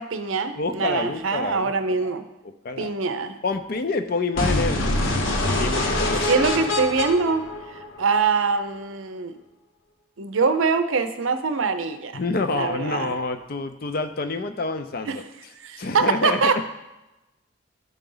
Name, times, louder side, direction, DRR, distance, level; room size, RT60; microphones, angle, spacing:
voice 1, 0.0-2.2 2.8-3.4 6.3-7.5 8.0-9.4 10.2-12.2 12.5-13.1 15.1-15.2 15.6-16.6, right 4 dB, 80° right, 9 dB, 0.6 m, -23 dB
voice 2, 0.6-2.1 2.6-2.9 3.4-5.1 5.5-6.3 12.1-15.2 15.8-16.6, left 3 dB, 45° left, 9 dB, 0.5 m, -28 dB
sound 1, 4.4-8.3, left 1 dB, 75° left, 1.0 m, -25 dB
11.5 x 4.0 x 3.9 m, 0.99 s
head